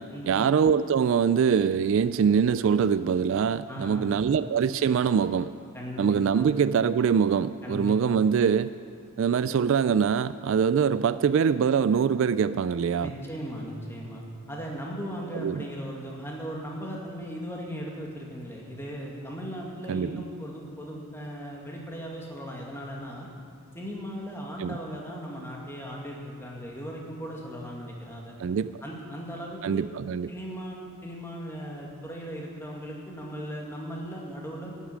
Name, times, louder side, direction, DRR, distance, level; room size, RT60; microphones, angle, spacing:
voice 1, 0.3-5.5 6.0-8.7 9.2-13.1 15.4-15.7 19.9-20.1 24.6-24.8 28.4-28.7 29.6-30.3, right 7 dB, 60° right, 15 dB, 0.3 m, -23 dB
voice 2, 3.7-4.2 5.7-6.5 7.6-8.2 13.0-23.3 23.7-28.3 28.8-29.9 30.3-34.8, equal, 10° left, -2 dB, 2.1 m, -37 dB
12.0 x 8.3 x 9.0 m, 2.2 s
head